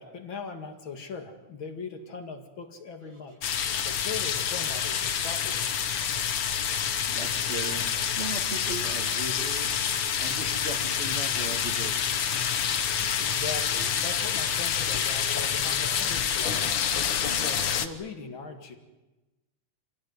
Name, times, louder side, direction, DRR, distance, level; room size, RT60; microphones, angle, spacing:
voice 1, 0.0-3.4 3.8-5.8 13.2-16.8 17.2-18.7, left 4 dB, 40° left, 5 dB, 2.6 m, -40 dB
sound 1, 3.4-17.9, left 8 dB, 60° left, 1.4 m, -27 dB
voice 2, 7.1-12.0, right 3 dB, 25° right, -1 dB, 1.7 m, -38 dB
27.5 x 16.5 x 9.5 m, 1.1 s
omnidirectional pair, 3.6 m